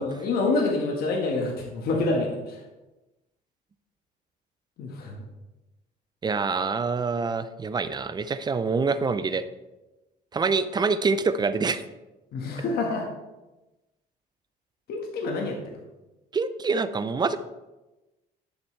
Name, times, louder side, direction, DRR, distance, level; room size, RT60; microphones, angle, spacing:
voice 1, 0.0-2.6 4.8-5.3 12.3-13.1 14.9-15.8, left 3 dB, 65° left, 0 dB, 1.6 m, -27 dB
voice 2, 6.2-9.4 10.3-11.8 16.3-17.4, right 4 dB, 25° right, 12 dB, 0.6 m, -26 dB
10.5 x 7.2 x 3.3 m, 1.0 s
cardioid pair, 110°, 17 cm